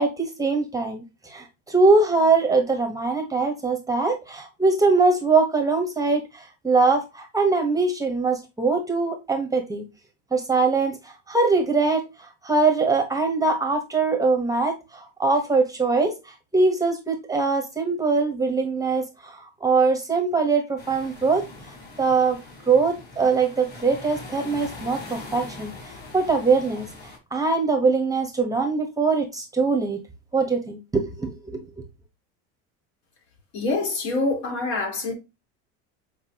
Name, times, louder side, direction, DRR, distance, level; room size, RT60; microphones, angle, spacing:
voice 1, 0.0-9.8 10.3-12.0 12.4-16.1 16.5-21.4 22.0-22.4 22.7-25.7 26.1-26.9 27.3-30.0 30.3-31.6, right 4 dB, 10° right, 1.0 m, -22 dB
sound 1, 20.8-27.2, left 2 dB, 30° left, 3.9 m, -42 dB
voice 2, 33.5-35.1, left 3 dB, 60° left, 3.8 m, -25 dB
8.1 x 4.6 x 2.8 m
cardioid pair, 145°, 33 cm